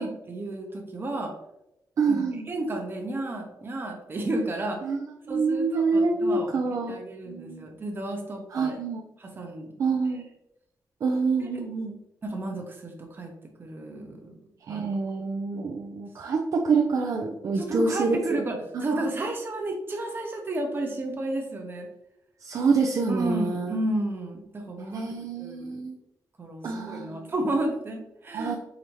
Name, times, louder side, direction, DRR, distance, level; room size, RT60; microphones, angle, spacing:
voice 1, 0.0-1.3 2.1-4.8 5.3-6.5 6.9-8.7 9.2-9.7 12.2-13.3 13.6-14.4 14.7-14.9 17.6-21.9 23.1-25.1 25.4-25.8 26.4-28.6, right 2 dB, 30° right, 2 dB, 0.8 m, -32 dB
voice 2, 2.0-2.5 4.8-6.9 7.3-7.7 8.5-9.0 9.8-10.3 11.0-12.0 14.7-18.4 18.7-18.9 19.2-19.3 22.4-23.8 24.9-26.0 26.6-27.3 28.3-28.6, right 4 dB, 55° right, 1 dB, 0.4 m, -27 dB
4.9 x 2.7 x 3.0 m, 0.84 s
wide cardioid pair, 160°, 7 cm